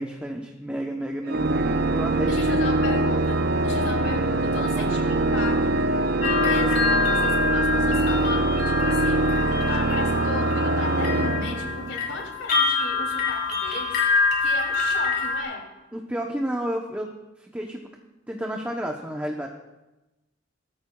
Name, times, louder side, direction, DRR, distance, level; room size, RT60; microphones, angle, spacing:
voice 1, 0.0-3.1 3.7-4.1 4.6-5.0 15.9-17.1 17.4-17.9 18.3-19.5, equal, 10° right, 1 dB, 0.8 m, -32 dB
Organ, 1.3-12.2, right 2 dB, 50° right, 0.6 m, -23 dB
voice 2, 2.3-15.6, left 2 dB, 90° left, 1 dB, 2.9 m, -36 dB
sound 1, 6.2-15.4, left 4 dB, 55° left, 2.9 m, -26 dB
21.5 x 14.0 x 2.3 m, 1.0 s
head